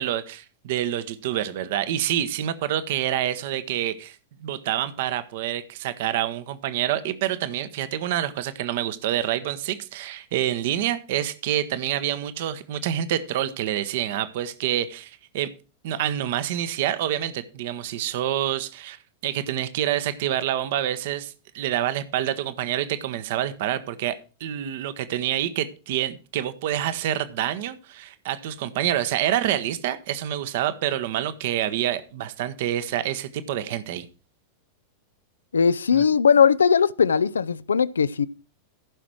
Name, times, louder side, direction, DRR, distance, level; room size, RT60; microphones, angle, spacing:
voice 1, 0.0-4.2 4.4-15.5 15.8-24.1 24.4-34.1 35.9-36.0, right 11 dB, 50° right, 1.0 m, -27 dB
voice 2, 35.5-38.3, left 6 dB, 70° left, 0.4 m, -19 dB
15.0 x 6.2 x 4.6 m
figure-of-eight pair, 90°, 0 cm